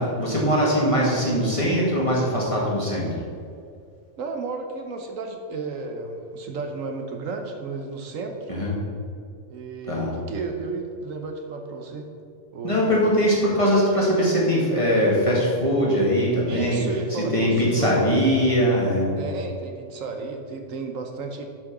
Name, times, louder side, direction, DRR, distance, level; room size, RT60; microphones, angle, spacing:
voice 1, 0.0-3.1 8.5-8.8 9.9-10.1 12.6-16.8 17.1-19.1, equal, 25° left, -5 dB, 2.1 m, -21 dB
voice 2, 4.2-8.5 9.5-12.1 12.5-13.0 16.5-18.1 19.2-21.4, right 4 dB, 75° right, 4 dB, 1.3 m, -33 dB
7.6 x 6.2 x 6.1 m, 2.3 s
omnidirectional pair, 1.4 m